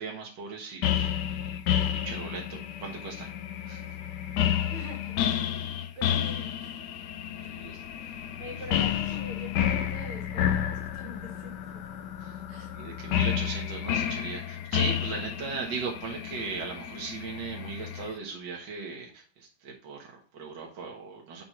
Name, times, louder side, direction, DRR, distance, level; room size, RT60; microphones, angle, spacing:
voice 1, 0.0-1.3 2.0-3.3 3.7-3.9 7.3-7.8 8.8-8.9 12.2-12.4 12.7-21.4, right 5 dB, 60° right, -1 dB, 2.0 m, -38 dB
sound 1, 0.8-18.1, left 10 dB, 70° left, 1.1 m, -30 dB
voice 2, 4.7-6.9 7.4-7.6 8.4-11.8 12.5-12.7, right 1 dB, 75° right, 0 dB, 2.8 m, -45 dB
7.7 x 4.4 x 4.3 m, 0.38 s
omnidirectional pair, 2.4 m